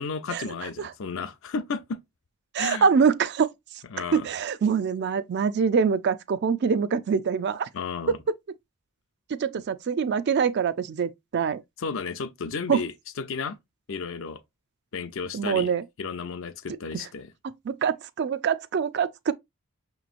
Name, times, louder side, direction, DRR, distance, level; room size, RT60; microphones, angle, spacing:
voice 1, 0.0-2.0 2.6-2.9 3.9-4.3 7.7-8.2 11.8-13.6 13.9-14.4 14.9-15.7 16.0-17.3, left 5 dB, 60° left, 0.5 m, -33 dB
voice 2, 2.5-3.5 4.1-7.7 8.1-8.2 9.3-11.6 12.7-12.8 15.3-15.8 17.7-19.3, right 6 dB, 50° right, 0.3 m, -24 dB
6.0 x 3.0 x 2.4 m
head